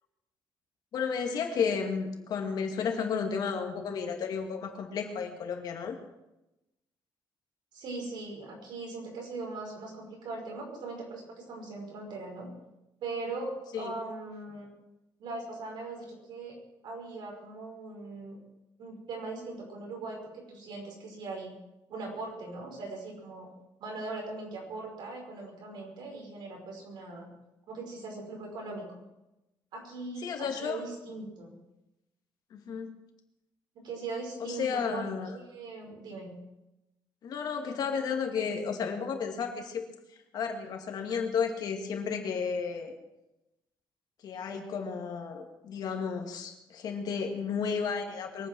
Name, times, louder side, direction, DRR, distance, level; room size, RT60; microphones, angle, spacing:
voice 1, 0.9-6.0 13.7-13.9 30.2-30.8 32.5-32.9 34.5-35.3 37.2-39.8 40.3-42.9 44.2-48.5, left 6 dB, 55° left, 4 dB, 2.3 m, -32 dB
voice 2, 7.7-12.5 13.0-14.7 15.2-16.6 16.8-18.4 18.8-21.6 21.9-23.5 23.8-27.3 27.7-28.9 29.7-31.6 33.7-36.4, right 3 dB, 65° right, 0 dB, 5.6 m, -40 dB
23.0 x 9.2 x 6.3 m, 0.94 s
cardioid pair, 175°, 8 cm